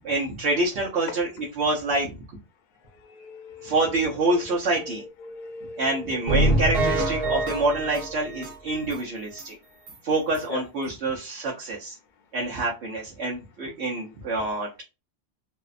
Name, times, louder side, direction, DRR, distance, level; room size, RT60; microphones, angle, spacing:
voice 1, 0.0-1.3 1.6-2.1 3.6-5.0 5.8-9.5 10.0-11.9 12.3-14.8, right 2 dB, 85° right, 1.0 m, -26 dB
voice 2, 2.8-4.4 4.7-8.1 10.5-10.7, left 4 dB, 55° left, 0.6 m, -40 dB
sound 1, 6.3-9.0 9.4-9.5 9.9-10.0 10.3-10.4, right 1 dB, 60° right, 1.0 m, -25 dB
2.6 x 2.1 x 2.4 m
omnidirectional pair, 1.1 m